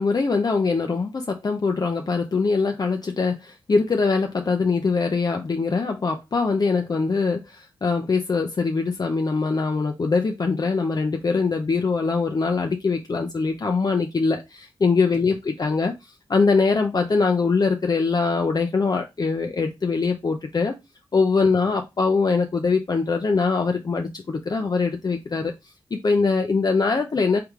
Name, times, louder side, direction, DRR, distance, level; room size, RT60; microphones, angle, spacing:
voice 1, 0.0-20.8 21.1-25.5 25.9-27.4, left 4 dB, 40° left, 0.5 m, -22 dB
3.3 x 3.2 x 3.6 m
cardioid pair, 55°, 10 cm